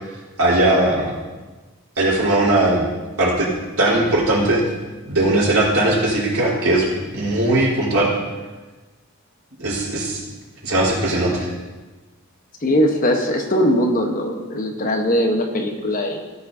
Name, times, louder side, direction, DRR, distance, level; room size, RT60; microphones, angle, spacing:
voice 1, 0.4-1.1 2.0-2.8 3.2-3.5 3.8-4.6 5.1-6.9 7.1-8.1 9.6-10.2 10.6-11.5, right 1 dB, 80° right, -5 dB, 4.0 m, -18 dB
voice 2, 12.6-16.2, equal, 40° left, 3 dB, 1.0 m, -20 dB
17.0 x 8.6 x 2.7 m, 1.2 s
head